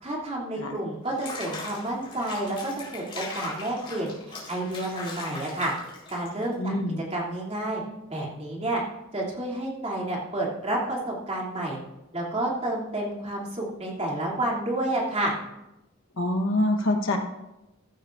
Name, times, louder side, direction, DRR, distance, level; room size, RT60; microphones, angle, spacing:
voice 1, 0.0-4.1 4.5-5.7 6.1-6.7 7.1-7.8 8.1-8.8 9.1-11.8 12.1-15.3, right 1 dB, 30° right, -4 dB, 2.9 m, -30 dB
Water / Bathtub (filling or washing), 1.1-6.5, left 3 dB, 25° left, 4.3 m, -39 dB
voice 2, 6.6-7.0 16.2-17.2, left 1 dB, 70° left, 2 dB, 1.2 m, -25 dB
15.0 x 12.5 x 2.6 m, 0.96 s
head